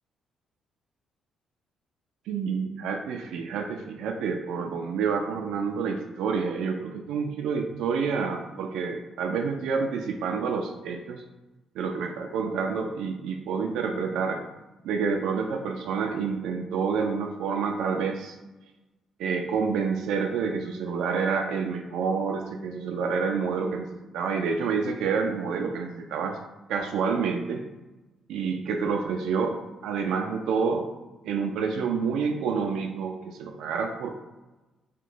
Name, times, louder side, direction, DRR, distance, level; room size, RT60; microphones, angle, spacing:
voice 1, 2.3-11.2 11.8-14.4 14.8-18.4 19.2-26.4 26.7-27.6 28.3-29.6 29.8-30.9 31.2-34.1, right 5 dB, 85° right, 3 dB, 0.3 m, -28 dB
2.9 x 2.2 x 3.9 m, 1.1 s
cardioid pair, 90°, 0 cm